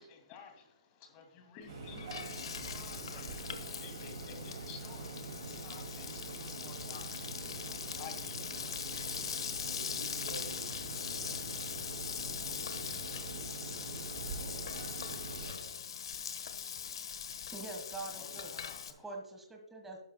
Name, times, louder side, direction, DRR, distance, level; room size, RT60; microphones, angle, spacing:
voice 1, 0.0-9.3 18.0-19.1, left 6 dB, 30° left, 5 dB, 2.2 m, -54 dB
Frying (food), 1.6-18.9, left 7 dB, 60° left, 1.2 m, -41 dB
sound 1, 1.7-15.5, right 4 dB, 45° right, 2.3 m, -44 dB
voice 2, 9.7-15.8, right 1 dB, 75° right, 4 dB, 3.4 m, -52 dB
voice 3, 17.5-18.6 19.0-20.0, right 3 dB, 5° right, 1 dB, 1.4 m, -44 dB
11.5 x 11.5 x 2.2 m, 0.77 s
figure-of-eight pair, 135°, 3 cm